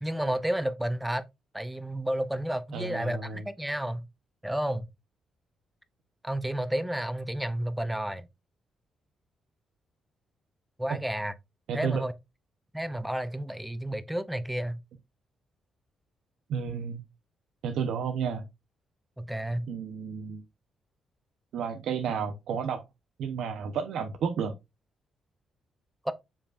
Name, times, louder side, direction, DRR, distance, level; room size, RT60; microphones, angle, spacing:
voice 1, 0.0-1.3 1.5-4.1 4.4-4.9 6.2-8.3 10.8-11.3 11.7-12.1 12.7-14.8 19.2-19.7 26.0-26.1, right 1 dB, 5° right, 0.6 m, -31 dB
voice 2, 2.7-3.4 10.9-11.0 11.7-12.0 16.5-17.0 17.6-18.5 19.7-20.4 21.5-22.8 23.2-24.5, right 6 dB, 80° right, 0.9 m, -31 dB
7.3 x 5.1 x 2.5 m
cardioid pair, 145°, 0 cm